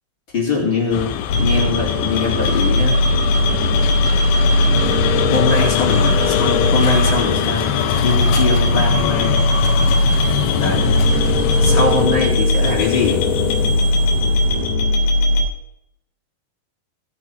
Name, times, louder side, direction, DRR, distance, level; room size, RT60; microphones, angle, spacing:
voice 1, 0.3-1.1 1.4-3.0 4.9-9.4 10.5-11.0 11.6-13.2, left 4 dB, 30° left, -4 dB, 4.2 m, -22 dB
sound 1, 0.9-14.7, left 11 dB, 80° left, 2.3 m, -24 dB
sound 2, 1.3-15.4, left 1 dB, 60° left, 4.0 m, -18 dB
18.0 x 6.4 x 6.0 m, 0.76 s
omnidirectional pair, 4.9 m